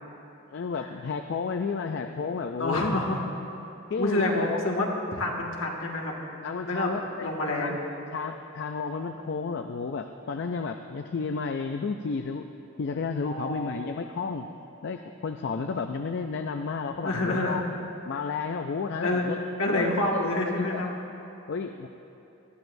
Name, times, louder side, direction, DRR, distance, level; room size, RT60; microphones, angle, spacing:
voice 1, 0.5-3.0 3.9-4.6 6.4-7.3 7.6-7.8 8.1-12.5 12.8-14.5 14.8-17.6 18.1-19.4 19.7-20.8 21.5-21.9, left 5 dB, 55° left, 6 dB, 0.4 m, -32 dB
voice 2, 2.6-3.2 4.0-6.2 6.6-6.9 7.2-7.8 13.2-13.8 17.0-17.6 19.0-19.2 19.6-20.9, left 1 dB, 70° left, -1 dB, 1.7 m, -28 dB
19.5 x 13.0 x 2.6 m, 3.0 s
head